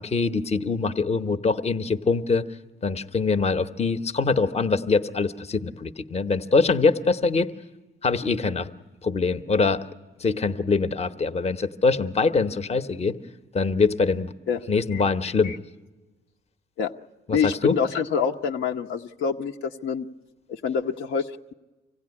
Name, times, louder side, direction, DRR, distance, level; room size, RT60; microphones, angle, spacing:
voice 1, 0.0-2.5 2.8-7.5 8.0-8.7 9.0-9.8 10.2-13.2 13.5-14.3 14.7-15.5 17.3-17.7, left 4 dB, 30° left, 10 dB, 0.9 m, -23 dB
voice 2, 17.3-20.1 20.5-21.5, left 6 dB, 75° left, 2 dB, 0.9 m, -26 dB
25.0 x 16.5 x 9.7 m, 1.2 s
cardioid pair, 90°, 20 cm